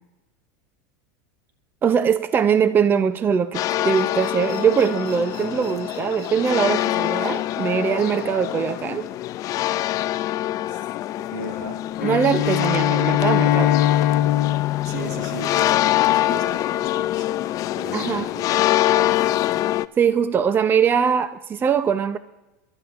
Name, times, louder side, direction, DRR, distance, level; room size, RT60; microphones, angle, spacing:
voice 1, 1.8-9.1 12.0-13.7 17.9-18.3 20.0-22.2, right 7 dB, 25° right, 0.5 m, -21 dB
sound 1, 3.5-19.9, left 14 dB, 40° left, 0.4 m, -24 dB
sound 2, 3.6-10.5, right 1 dB, 50° right, 5.3 m, -49 dB
voice 2, 11.3-11.8 14.8-17.5 17.7-19.7, right 3 dB, 75° right, 2.6 m, -37 dB
Bowed string instrument, 12.0-16.2, left 12 dB, 65° left, 1.1 m, -22 dB
25.5 x 12.5 x 2.5 m
supercardioid pair, 120°, 9 cm